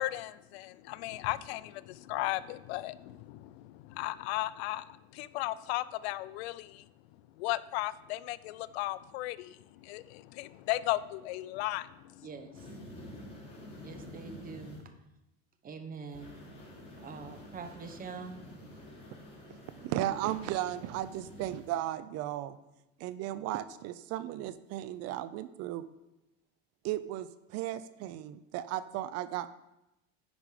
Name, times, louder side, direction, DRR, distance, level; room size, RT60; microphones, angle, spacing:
voice 1, 0.0-6.9 7.4-12.7, left 17 dB, 90° left, 18 dB, 0.5 m, -36 dB
voice 2, 12.2-12.6 13.8-14.8 15.6-16.3 17.0-18.4, right 5 dB, 30° right, 7 dB, 1.0 m, -44 dB
sound 1, 12.5-14.8 16.1-21.7, left 1 dB, 20° left, 2.9 m, -49 dB
voice 3, 19.8-22.6 23.0-25.9 26.8-29.5, right 13 dB, 55° right, 14 dB, 0.5 m, -35 dB
10.5 x 5.1 x 4.9 m, 0.92 s
supercardioid pair, 125°, 31 cm